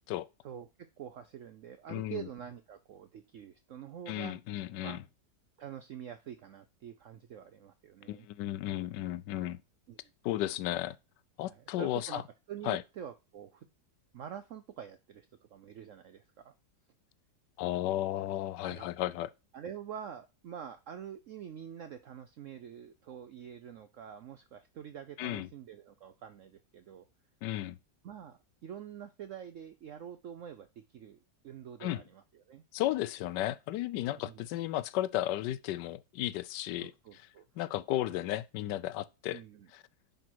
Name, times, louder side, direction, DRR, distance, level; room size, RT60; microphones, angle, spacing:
voice 1, 1.0-4.4 4.8-5.0 5.6-8.3 9.9-10.0 11.4-12.2 12.5-13.7 14.1-15.3 15.5-16.5 18.6-18.9 19.5-27.1 28.0-30.7 30.9-31.2 31.4-32.6 34.1-34.4 36.8-37.4 39.3-39.7, right 9 dB, 65° right, 0.7 m, -46 dB
voice 2, 1.9-2.3 4.1-5.0 8.1-9.6 10.2-11.0 11.4-12.2 12.6-12.8 17.6-19.3 25.2-25.5 27.4-27.8 31.8-32.0 32.7-37.3 37.6-39.4 39.7-39.8, left 14 dB, 80° left, 1.2 m, -34 dB
10.0 x 4.0 x 4.5 m
omnidirectional pair, 1.9 m